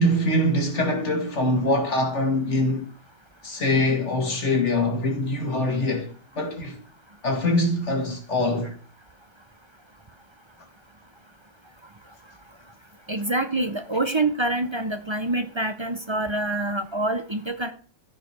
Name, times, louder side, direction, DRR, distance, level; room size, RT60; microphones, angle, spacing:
voice 1, 0.0-2.9 3.4-6.1 6.4-6.8 7.2-8.7, left 1 dB, 80° left, 2.5 m, -23 dB
voice 2, 13.1-17.7, right 2 dB, 25° right, 0.8 m, -26 dB
13.5 x 5.2 x 5.9 m
omnidirectional pair, 1.2 m